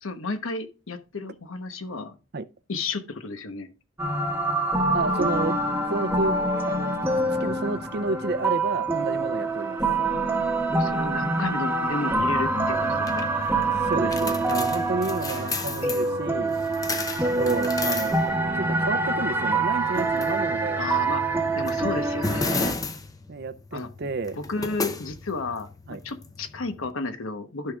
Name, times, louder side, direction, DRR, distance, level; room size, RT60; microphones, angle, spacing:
voice 1, 0.0-2.2 2.7-3.7 10.7-13.3 15.1-16.5 20.8-22.8 23.7-23.9 24.4-27.7, left 3 dB, 85° left, 1.0 m, -33 dB
sound 1, 4.0-22.7, right 2 dB, 10° right, 0.9 m, -25 dB
voice 2, 4.9-5.6 5.9-6.4 6.7-7.0 7.4-9.8 13.8-16.5 17.2-18.2 18.5-20.8 23.3-24.4 25.9-26.0, right 3 dB, 50° right, 0.5 m, -30 dB
sound 2, 12.2-26.9, left 3 dB, 15° left, 0.5 m, -34 dB
14.0 x 5.5 x 2.3 m
head